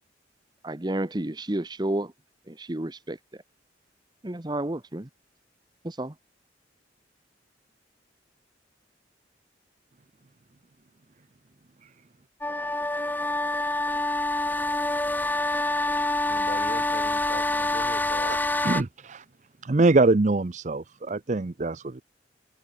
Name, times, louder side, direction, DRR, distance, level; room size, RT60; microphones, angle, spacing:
voice 1, 0.6-2.1 2.5-3.4 4.2-5.1 5.8-6.1, right 1 dB, 25° right, 0.9 m, -31 dB
sound 1, 12.4-18.8, left 2 dB, 10° left, 1.7 m, -26 dB
voice 2, 16.3-18.3, left 2 dB, 40° left, 6.8 m, -39 dB
voice 3, 18.6-19.2 19.6-22.0, right 3 dB, 40° right, 0.6 m, -23 dB
head